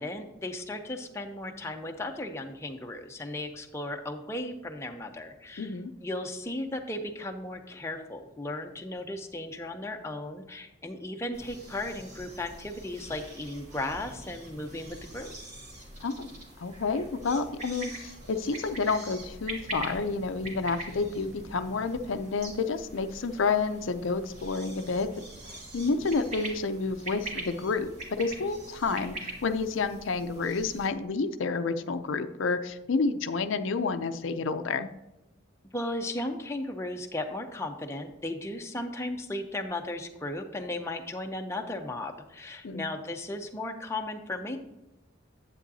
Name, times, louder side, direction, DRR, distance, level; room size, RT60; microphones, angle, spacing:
voice 1, 0.0-5.7 6.0-15.3 35.7-44.6, left 1 dB, 15° left, 3 dB, 0.6 m, -36 dB
voice 2, 5.6-5.9 16.0-25.1 25.5-34.9 42.6-42.8, left 4 dB, 80° left, 9 dB, 0.5 m, -30 dB
sound 1, 11.3-30.9, right 1 dB, 35° right, 2.0 m, -43 dB
10.0 x 8.3 x 2.7 m, 0.96 s
head